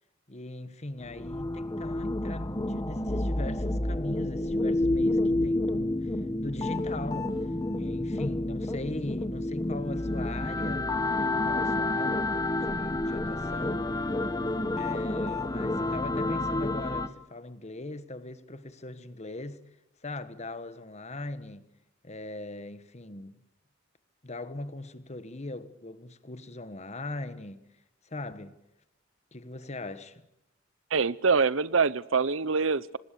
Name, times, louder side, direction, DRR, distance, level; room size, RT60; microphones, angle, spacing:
voice 1, 0.3-6.1 6.4-7.5 7.7-13.9 14.7-19.6 20.0-21.7 22.0-23.4 24.2-27.6 28.0-28.6 29.3-30.2, left 2 dB, 35° left, 1.4 m, -40 dB
sound 1, 1.0-17.1, left 2 dB, 20° left, 1.1 m, -29 dB
voice 2, 30.9-33.0, right 5 dB, 70° right, 0.8 m, -25 dB
25.5 x 20.0 x 6.9 m
head